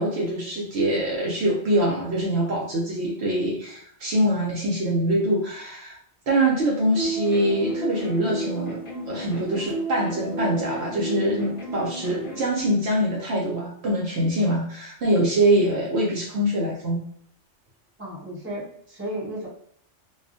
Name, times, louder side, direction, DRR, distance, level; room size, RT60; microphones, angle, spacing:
voice 1, 0.0-6.0 6.3-8.8 9.1-17.0, right 1 dB, 65° right, -3 dB, 0.8 m, -24 dB
sound 1, 6.9-12.4, right 2 dB, 40° left, 0.5 m, -32 dB
voice 2, 18.0-19.5, right 1 dB, 10° right, -6 dB, 0.8 m, -34 dB
2.3 x 2.2 x 2.5 m, 0.65 s
omnidirectional pair, 1.3 m